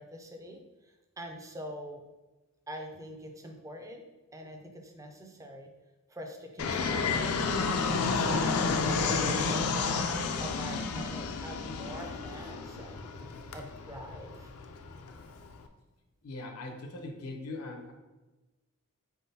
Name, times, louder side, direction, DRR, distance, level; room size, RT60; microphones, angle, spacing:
voice 1, 0.0-2.0 2.7-4.0 4.3-5.7 6.1-8.6 9.2-9.9 10.3-13.1 13.5-14.5, equal, 15° right, 3 dB, 0.4 m, -45 dB
Fixed-wing aircraft airplane, 6.6-15.6, left 4 dB, 70° left, 0.4 m, -31 dB
voice 2, 16.2-17.9, left 2 dB, 90° left, 2 dB, 0.8 m, -40 dB
4.1 x 3.6 x 2.7 m, 1.1 s
head